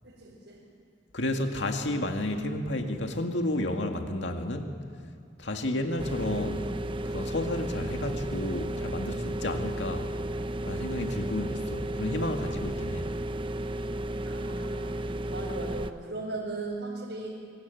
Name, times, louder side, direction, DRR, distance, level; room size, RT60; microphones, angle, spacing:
voice 1, 0.0-0.6 14.2-15.0 15.3-17.3, right 2 dB, 75° right, -5 dB, 5.3 m, -37 dB
voice 2, 1.1-4.8 5.4-6.7 7.1-10.1 10.6-13.1, left 1 dB, 90° left, 4 dB, 2.1 m, -31 dB
sound 1, 6.0-15.9, right 1 dB, 30° right, 0.8 m, -33 dB
26.0 x 24.0 x 9.2 m, 2.2 s
head